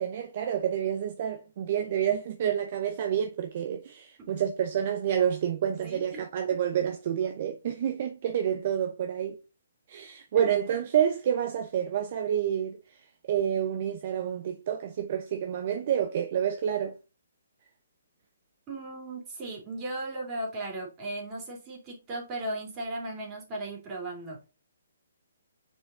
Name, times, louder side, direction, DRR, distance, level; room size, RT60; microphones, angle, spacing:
voice 1, 0.0-9.4 9.9-12.8 13.3-17.0, right 9 dB, 45° right, 0.7 m, -28 dB
voice 2, 5.8-6.2 6.5-6.7 10.3-10.5 18.7-24.5, right 1 dB, 25° right, 3.0 m, -37 dB
5.6 x 4.7 x 3.8 m
hypercardioid pair, 140°, 0 cm